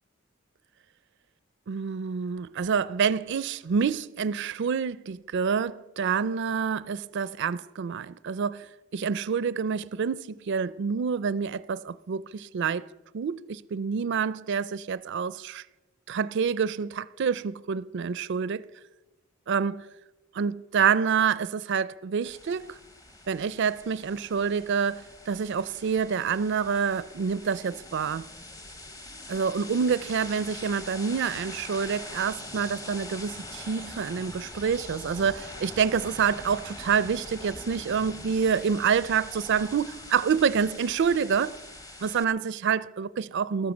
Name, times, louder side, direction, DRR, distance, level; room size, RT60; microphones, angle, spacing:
voice 1, 1.7-8.7 8.9-12.9 13.1-15.6 16.1-18.6 19.5-19.9 20.3-22.8 23.3-28.3 29.3-41.6 42.0-43.7, right 6 dB, 60° right, 0.4 m, -27 dB
sound 1, 22.2-42.2, left 2 dB, 15° left, 0.9 m, -43 dB
14.5 x 12.5 x 7.1 m
head